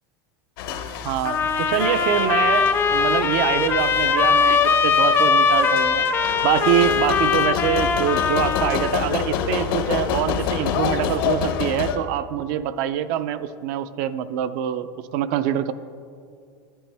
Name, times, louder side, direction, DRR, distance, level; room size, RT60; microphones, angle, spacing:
sound 1, 0.6-12.0, left 7 dB, 70° left, 0.7 m, -28 dB
voice 1, 1.0-6.1 6.4-15.7, right 10 dB, 50° right, 13 dB, 0.4 m, -25 dB
sound 2, 1.2-9.0, left 5 dB, 20° left, 0.3 m, -20 dB
11.5 x 8.9 x 3.4 m, 2.3 s
supercardioid pair, 160°, 12 cm